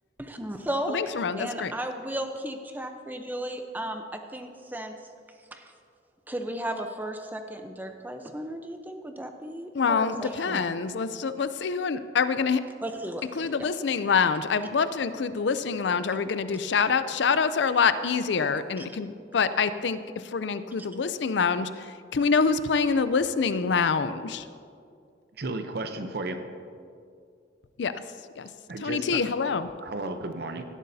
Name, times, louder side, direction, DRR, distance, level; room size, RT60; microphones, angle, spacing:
voice 1, 0.2-5.0 5.5-5.7 6.3-10.6 12.8-13.2, right 1 dB, 10° right, 6 dB, 0.7 m, -35 dB
voice 2, 0.9-1.7 9.7-12.6 13.3-24.5 27.8-28.0 28.4-28.5 28.8-29.7, left 5 dB, 65° left, 12 dB, 0.5 m, -26 dB
voice 3, 25.4-26.4 28.7-29.2 29.8-30.6, right 2 dB, 60° right, 7 dB, 0.7 m, -33 dB
17.0 x 12.0 x 2.7 m, 2.3 s
head